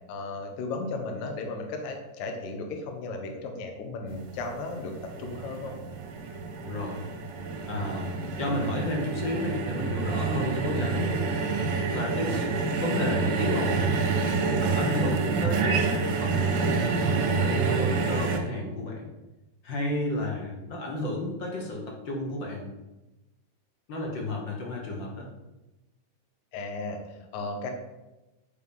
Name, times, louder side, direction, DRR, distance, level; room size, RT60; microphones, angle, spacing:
voice 1, 0.1-5.7 10.4-11.0 26.5-27.7, left 3 dB, 75° left, 4 dB, 2.2 m, -35 dB
sound 1, 4.1-18.4, right 4 dB, 85° right, 2.4 m, -28 dB
voice 2, 6.6-7.0 7.7-11.2 11.9-12.5 12.8-13.9 14.6-19.1 19.6-22.7 23.9-25.3, left 1 dB, 50° left, -1 dB, 1.5 m, -32 dB
9.3 x 3.4 x 5.3 m, 1.0 s
omnidirectional pair, 3.5 m